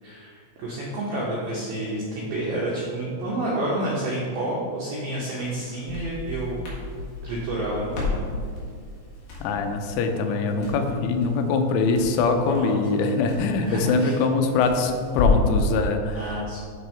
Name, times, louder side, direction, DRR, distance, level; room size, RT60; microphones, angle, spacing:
voice 1, 0.0-6.6 7.2-8.3 12.5-12.8 13.6-14.1 16.1-16.6, right 1 dB, 80° right, -5 dB, 2.1 m, -29 dB
Crackle, 5.4-15.6, left 4 dB, 60° left, 2.5 m, -31 dB
voice 2, 9.4-16.4, left 4 dB, 85° left, 6 dB, 3.1 m, -23 dB
10.0 x 3.5 x 4.3 m, 2.1 s
omnidirectional pair, 5.6 m